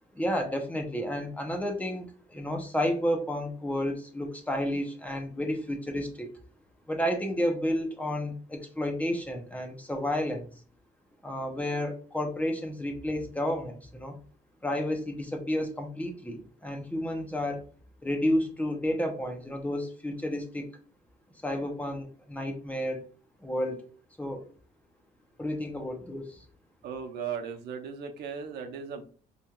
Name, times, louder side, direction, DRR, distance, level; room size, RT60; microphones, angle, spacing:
voice 1, 0.1-6.3 6.9-10.5 11.2-14.1 14.6-17.7 18.0-20.7 21.4-23.0 23.4-23.8 24.2-24.4 25.4-26.4, left 1 dB, 10° left, 3 dB, 0.9 m, -31 dB
voice 2, 26.8-29.0, right 6 dB, 75° right, 4 dB, 0.8 m, -37 dB
4.2 x 3.1 x 2.4 m, 0.41 s
cardioid pair, 110°, 17 cm